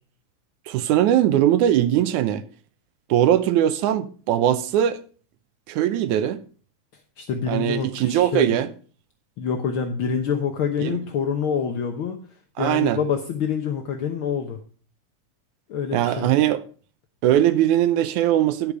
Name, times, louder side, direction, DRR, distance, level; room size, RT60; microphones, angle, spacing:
voice 1, 0.7-2.4 3.1-5.0 5.7-6.4 7.5-8.7 10.8-11.0 12.6-13.0 15.9-16.6 17.2-18.7, right 11 dB, 80° right, 2.2 m, -20 dB
voice 2, 7.2-8.5 9.4-12.2 12.6-14.6 15.7-16.3, left 6 dB, 65° left, 1.4 m, -26 dB
10.5 x 8.3 x 5.2 m
omnidirectional pair, 3.5 m